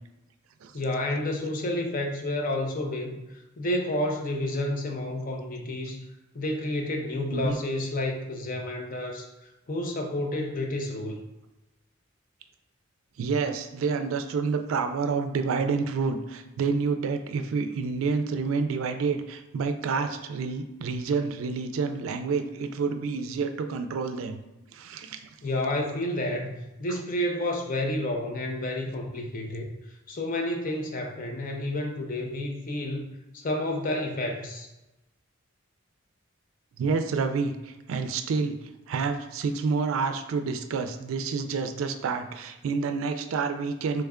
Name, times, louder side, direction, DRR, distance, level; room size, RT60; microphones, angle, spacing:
voice 1, 0.7-3.2 3.6-6.0 6.3-9.3 9.7-11.2 25.4-29.7 30.1-34.7, left 1 dB, 40° left, 2 dB, 0.5 m, -30 dB
voice 2, 13.2-24.4 24.7-25.2 36.8-38.5 38.9-44.0, right 5 dB, 85° right, 8 dB, 0.4 m, -28 dB
3.2 x 2.2 x 3.5 m, 1.0 s
head